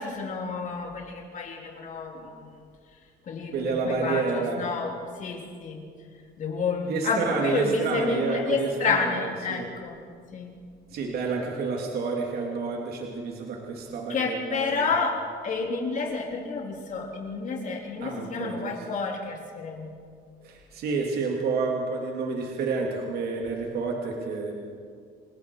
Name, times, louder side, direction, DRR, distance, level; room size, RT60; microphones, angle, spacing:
voice 1, 0.0-2.5 3.3-5.9 6.4-10.0 10.3-10.6 14.1-19.9, left 4 dB, 50° left, 1 dB, 3.7 m, -30 dB
voice 2, 3.5-4.7 6.9-9.7 10.9-14.9 18.0-18.8 20.4-24.5, right 4 dB, 65° right, 0 dB, 3.0 m, -29 dB
28.5 x 19.5 x 4.8 m, 2.1 s
cardioid pair, 110°, 17 cm